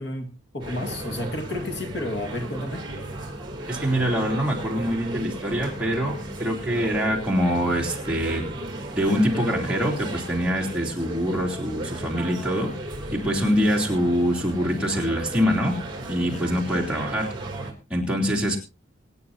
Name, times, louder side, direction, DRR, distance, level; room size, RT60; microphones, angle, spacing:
voice 1, 0.0-2.9, left 1 dB, 65° left, 1.8 m, -31 dB
sound 1, 0.6-17.7, right 1 dB, 25° right, 3.1 m, -35 dB
voice 2, 3.7-8.5 8.9-12.7 13.1-15.8 16.1-17.3 17.9-18.6, equal, 5° right, 3.2 m, -24 dB
24.5 x 9.7 x 2.8 m
head